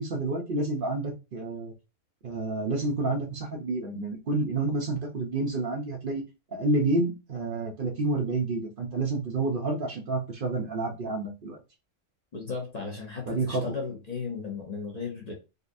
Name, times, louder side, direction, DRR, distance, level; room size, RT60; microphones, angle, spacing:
voice 1, 0.0-1.7 2.2-6.2 6.5-11.6 13.3-13.6, right 2 dB, 50° right, 2 dB, 0.8 m, -29 dB
voice 2, 12.3-15.3, left 5 dB, 40° left, 0 dB, 0.7 m, -35 dB
3.9 x 2.5 x 2.6 m, 0.29 s
omnidirectional pair, 1.2 m